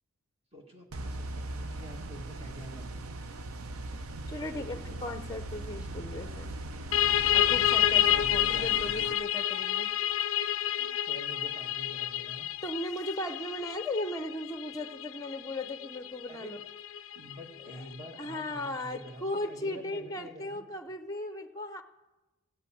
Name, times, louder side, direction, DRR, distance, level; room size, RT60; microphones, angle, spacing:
voice 1, 0.5-3.0 3.3-3.4 4.5-5.0 8.1-8.7 10.7-12.5 16.3-16.5 17.1-20.7, equal, 25° right, 2 dB, 1.8 m, -47 dB
sound 1, 0.9-9.1, right 2 dB, 85° right, 0.7 m, -40 dB
voice 2, 4.3-6.5 7.3-9.9 12.6-16.6 17.7-17.8 18.2-21.8, left 1 dB, 15° left, 9 dB, 0.6 m, -37 dB
sound 2, 6.9-18.3, left 12 dB, 65° left, 0.4 m, -29 dB
15.0 x 8.2 x 8.6 m, 1.1 s
head